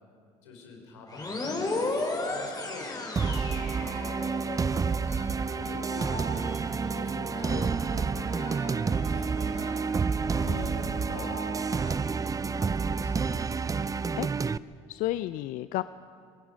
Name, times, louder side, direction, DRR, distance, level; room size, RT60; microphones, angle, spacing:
voice 1, 0.4-5.2 5.6-6.5 6.9-9.8 10.4-13.4 13.7-14.2, left 3 dB, 90° left, 2 dB, 3.7 m, -46 dB
sound 1, 1.1-4.6, left 2 dB, 25° left, 4.2 m, -33 dB
sound 2, 3.2-14.6, right 5 dB, 25° right, 0.5 m, -29 dB
sound 3, 3.7-12.0, left 1 dB, 45° left, 6.1 m, -43 dB
voice 2, 10.4-10.8 14.2-14.3 14.9-15.8, left 16 dB, 65° left, 14 dB, 0.5 m, -32 dB
27.5 x 18.5 x 5.1 m, 2.4 s
hypercardioid pair, 65°, 15 cm